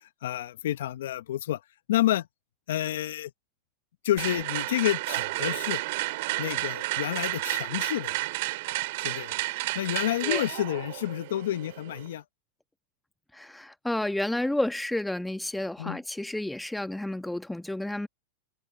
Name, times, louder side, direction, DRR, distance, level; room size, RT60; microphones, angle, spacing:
voice 1, 0.2-1.6 1.9-2.3 2.7-3.3 4.0-5.8 6.4-8.2 9.0-9.3 9.7-12.2 15.8-16.0, left 13 dB, 75° left, 0.9 m, -29 dB
sound 1, 4.2-12.1, right 21 dB, 65° right, 3.4 m, -32 dB
voice 2, 13.3-18.1, left 1 dB, 5° left, 1.3 m, -31 dB
hypercardioid pair, 110°, 0 cm